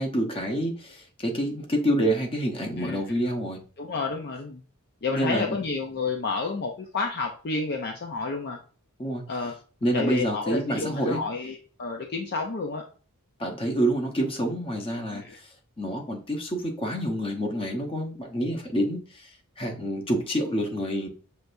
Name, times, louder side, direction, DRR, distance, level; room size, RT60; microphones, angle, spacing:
voice 1, 0.0-3.6 5.1-5.6 9.0-9.2 9.8-11.2 13.4-15.2 15.8-19.3 19.6-21.1, right 1 dB, 25° left, 2 dB, 1.0 m, -27 dB
voice 2, 3.8-4.6 5.0-8.6 9.3-9.5 9.9-12.8 15.1-15.4, left 4 dB, 50° left, 3 dB, 0.5 m, -30 dB
6.3 x 3.3 x 2.6 m, 0.38 s
head